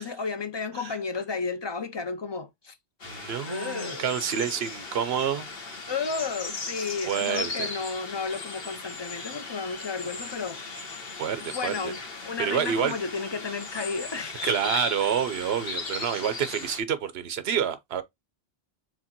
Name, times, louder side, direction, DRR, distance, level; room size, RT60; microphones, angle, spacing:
voice 1, 0.0-2.7 3.5-4.1 5.9-10.6 11.4-12.0 12.2-14.5, left 4 dB, 40° left, 0.4 m, -33 dB
sound 1, 3.0-16.8, left 4 dB, 65° left, 1.6 m, -37 dB
voice 2, 3.0-5.5 7.1-7.7 11.2-11.9 12.4-12.9 14.4-18.0, right 8 dB, 75° right, 0.9 m, -28 dB
5.0 x 3.6 x 2.8 m
omnidirectional pair, 1.1 m